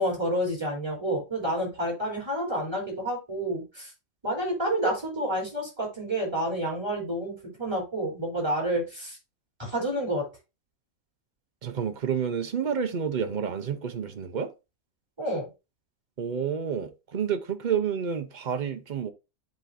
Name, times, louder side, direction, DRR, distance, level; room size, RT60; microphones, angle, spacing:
voice 1, 0.0-3.9 4.2-9.2 9.6-10.3 15.2-15.5, right 1 dB, 15° right, 3.3 m, -29 dB
voice 2, 11.6-14.5 16.2-19.1, right 7 dB, 50° right, 0.6 m, -29 dB
11.0 x 3.8 x 2.5 m
omnidirectional pair, 1.5 m